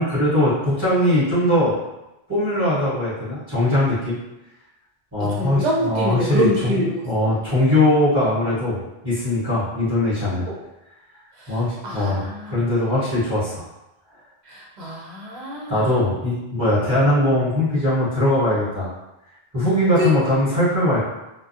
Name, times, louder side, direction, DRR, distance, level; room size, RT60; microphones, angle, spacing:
voice 1, 0.0-1.8 2.3-4.2 5.1-10.5 11.5-13.7 15.7-18.9 19.5-21.0, left 1 dB, 15° right, -13 dB, 1.0 m, -20 dB
voice 2, 5.2-7.0 10.5-10.6 11.4-11.5 11.8-12.5 14.5-15.8 20.0-20.1, equal, 55° right, -3 dB, 0.6 m, -25 dB
2.2 x 2.1 x 2.6 m, 0.94 s
omnidirectional pair, 1.1 m